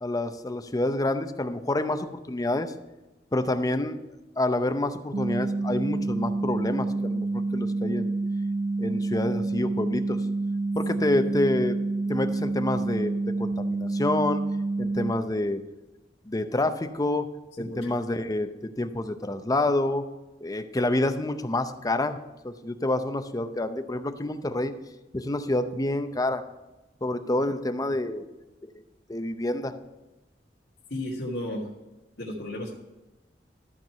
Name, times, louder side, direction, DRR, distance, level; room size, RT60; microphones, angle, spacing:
voice 1, 0.0-2.7 3.3-4.0 4.4-8.1 8.8-10.2 10.7-11.8 12.1-13.1 13.4-14.4 14.8-15.6 16.3-17.3 17.6-20.1 20.4-22.2 22.4-24.7 25.1-26.4 27.0-28.3 29.1-29.7, left 1 dB, 20° left, 9 dB, 0.6 m, -28 dB
sound 1, 5.1-15.1, right 3 dB, 45° right, 0.6 m, -28 dB
voice 2, 17.6-17.9 30.9-31.7 32.2-32.7, left 1 dB, 75° left, -6 dB, 1.9 m, -33 dB
13.5 x 4.6 x 5.7 m, 1.1 s
head